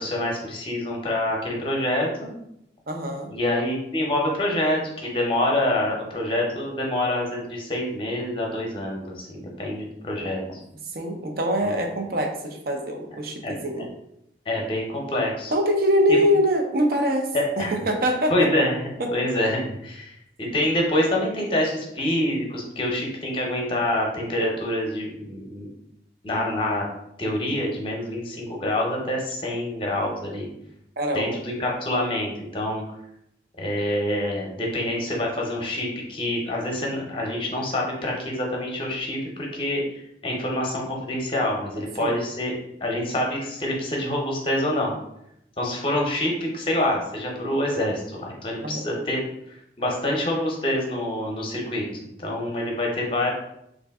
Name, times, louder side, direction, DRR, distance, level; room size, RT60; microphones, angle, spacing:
voice 1, 0.0-2.3 3.3-10.6 11.6-11.7 13.4-13.9 14.5-15.5 16.1-16.2 17.3-17.7 18.3-18.7 19.1-20.1 20.4-25.7 26.2-26.8 27.2-30.5 31.1-32.8 33.6-39.8 40.2-44.9 45.6-49.2 49.8-51.8 52.2-53.3, left 1 dB, 30° left, -1 dB, 0.7 m, -26 dB
voice 2, 2.9-3.3 10.2-10.3 10.9-13.9 15.5-17.3 17.6-18.5 19.0-19.1 31.0-31.4 42.0-42.2 48.6-48.8, equal, 55° right, 3 dB, 0.5 m, -24 dB
3.2 x 2.6 x 3.5 m, 0.80 s
head